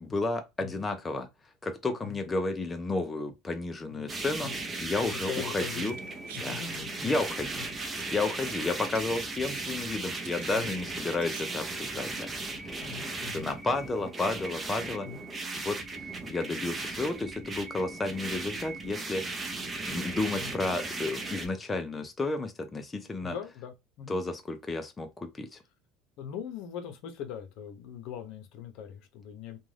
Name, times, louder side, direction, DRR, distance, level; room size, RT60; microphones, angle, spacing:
voice 1, 0.0-1.3 1.6-4.5 4.8-6.0 6.4-6.6 7.0-7.6 8.0-12.9 13.3-15.1 15.5-19.2 19.8-23.3 24.1-25.6, left 3 dB, 15° left, 0.5 m, -32 dB
sound 1, 4.1-21.5, right 3 dB, 20° right, 0.7 m, -37 dB
voice 2, 5.1-5.9 6.3-7.2 7.6-7.7 10.5-10.8 12.8-13.5 15.0-15.3 20.4-20.6 23.2-24.2 26.2-29.6, left 8 dB, 65° left, 0.7 m, -41 dB
sound 2, 5.8-7.0 7.8-8.5 8.8-9.8 10.2-11.4 11.7-11.8, right 10 dB, 90° right, 0.4 m, -49 dB
2.6 x 2.3 x 3.2 m
supercardioid pair, 120°, 0 cm